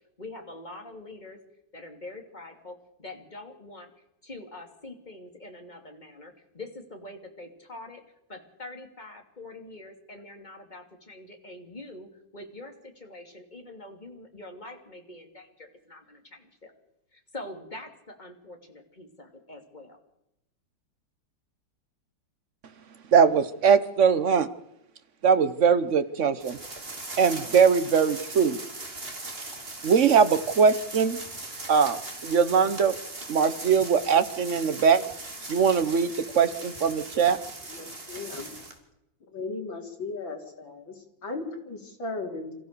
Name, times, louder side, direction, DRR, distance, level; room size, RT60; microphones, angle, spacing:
voice 1, 0.2-1.4 1.7-3.9 4.2-8.0 8.3-16.7 17.1-20.0, left 2 dB, 20° left, 4 dB, 2.9 m, -44 dB
voice 2, 23.1-24.5 25.2-26.6 27.2-28.6 29.8-31.2 31.7-32.9 33.3-35.0 35.5-37.4, right 6 dB, 45° right, 12 dB, 1.2 m, -21 dB
sound 1, 26.4-38.8, right 2 dB, 30° right, 2.9 m, -39 dB
voice 3, 37.7-38.6 39.3-42.6, left 3 dB, 80° left, 1 dB, 4.5 m, -36 dB
27.5 x 15.0 x 6.8 m, 0.86 s
omnidirectional pair, 2.1 m